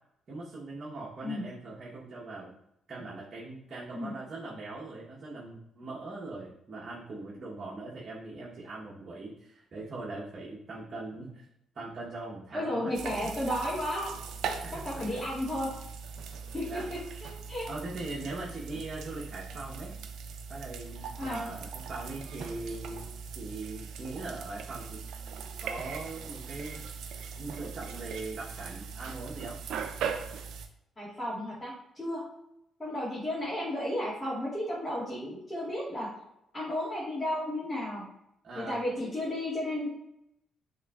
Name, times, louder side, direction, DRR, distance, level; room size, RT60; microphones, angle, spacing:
voice 1, 0.3-2.5 2.9-11.5 11.7-12.9 13.2-13.3 14.6-15.2 16.7-16.9 17.7-19.9 20.5-23.1 23.3-25.0 25.6-26.8 27.4-29.6 38.4-38.8, right 2 dB, 45° right, -5 dB, 1.0 m, -41 dB
voice 2, 12.5-14.1 14.7-15.7 16.5-17.7 21.2-21.4 31.0-32.2 32.8-36.1 36.5-38.0 38.5-39.9, left 1 dB, 20° left, -8 dB, 1.7 m, -33 dB
sound 1, 12.9-30.7, right 6 dB, 80° right, 0.5 m, -40 dB
6.5 x 3.1 x 2.4 m, 0.81 s
cardioid pair, 90°, 0 cm